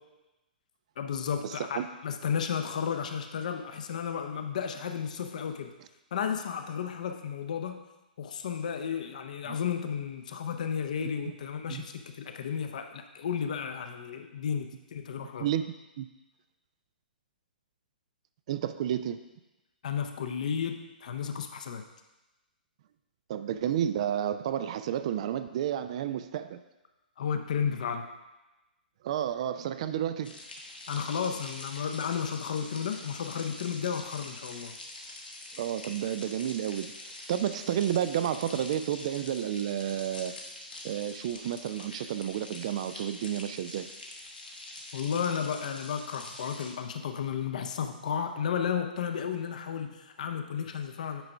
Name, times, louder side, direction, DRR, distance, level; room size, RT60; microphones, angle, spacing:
voice 1, 1.0-5.7 6.1-7.8 8.2-15.5 19.8-21.8 27.2-28.0 30.9-34.7 44.9-51.2, left 7 dB, 50° left, 6 dB, 0.7 m, -33 dB
voice 2, 18.5-19.2 23.3-26.6 29.0-30.4 35.6-40.3 40.8-43.9, right 10 dB, 40° right, 11 dB, 0.3 m, -31 dB
sound 1, 30.2-46.7, left 2 dB, 70° left, 1.3 m, -45 dB
9.0 x 4.8 x 3.4 m, 1.0 s
figure-of-eight pair, 115°, 5 cm